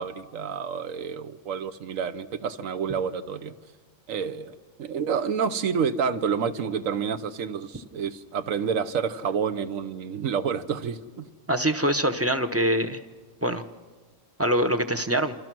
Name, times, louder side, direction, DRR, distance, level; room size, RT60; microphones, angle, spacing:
voice 1, 0.0-3.5 4.1-11.3, right 6 dB, 75° right, 12 dB, 1.3 m, -29 dB
voice 2, 11.5-13.0 13.4-13.6 14.4-15.3, right 1 dB, 15° right, 7 dB, 0.7 m, -24 dB
28.0 x 26.0 x 6.1 m, 1.4 s
omnidirectional pair, 1.4 m